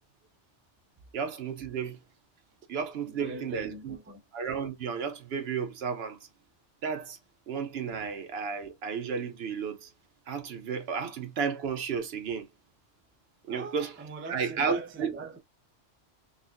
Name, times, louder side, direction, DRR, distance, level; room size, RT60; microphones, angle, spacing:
voice 1, 1.1-2.0 2.7-4.0 4.3-6.2 6.8-7.2 7.5-9.9 10.3-12.5 13.5-13.9 14.3-15.1, right 6 dB, 65° right, 0.9 m, -33 dB
voice 2, 3.0-4.2 13.5-15.4, right 3 dB, 20° right, 0.3 m, -42 dB
3.9 x 2.4 x 2.5 m
omnidirectional pair, 1.2 m